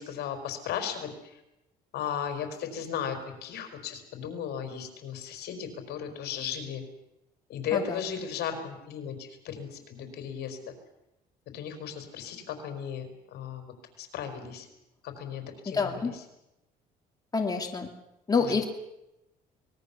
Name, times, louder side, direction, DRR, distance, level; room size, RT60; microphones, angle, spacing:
voice 1, 0.0-1.4 1.9-6.8 7.5-10.7 11.5-14.7 15.0-16.2 18.4-18.6, left 8 dB, 75° left, 7 dB, 4.6 m, -36 dB
voice 2, 15.7-16.1 17.3-17.9 18.3-18.6, left 4 dB, 20° left, 3 dB, 2.7 m, -27 dB
25.0 x 20.5 x 7.0 m, 0.90 s
cardioid pair, 110°, 17 cm